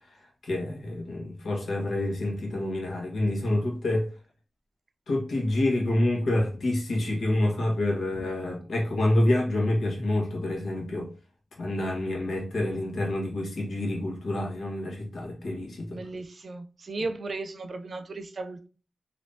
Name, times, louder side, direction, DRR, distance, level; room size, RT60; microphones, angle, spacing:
voice 1, 0.4-4.1 5.1-11.1 11.6-16.0, left 1 dB, 80° left, 1.3 m, -27 dB
voice 2, 15.9-18.7, right 3 dB, 55° right, 0.6 m, -35 dB
3.3 x 2.8 x 2.7 m
cardioid pair, 65°, 0 cm